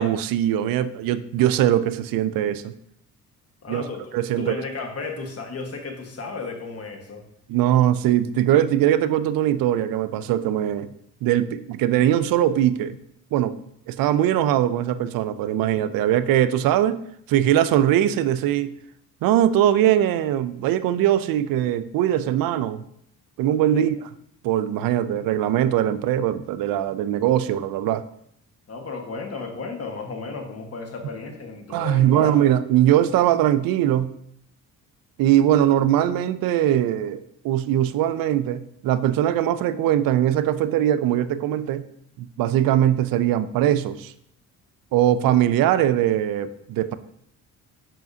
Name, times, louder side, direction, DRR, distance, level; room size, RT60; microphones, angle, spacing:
voice 1, 0.0-2.7 3.7-3.8 4.1-4.5 7.5-10.9 11.2-13.0 13.3-13.6 13.9-17.0 17.3-18.7 19.2-22.8 23.4-24.0 24.4-28.0 31.7-34.1 35.2-41.9 42.2-44.1 44.9-46.9, right 11 dB, 80° right, 14 dB, 0.5 m, -21 dB
voice 2, 3.6-4.0 4.4-7.2 23.7-23.9 28.7-32.5, left 4 dB, 45° left, 3 dB, 1.4 m, -34 dB
7.4 x 5.7 x 2.7 m, 0.72 s
cardioid pair, 85°, 34 cm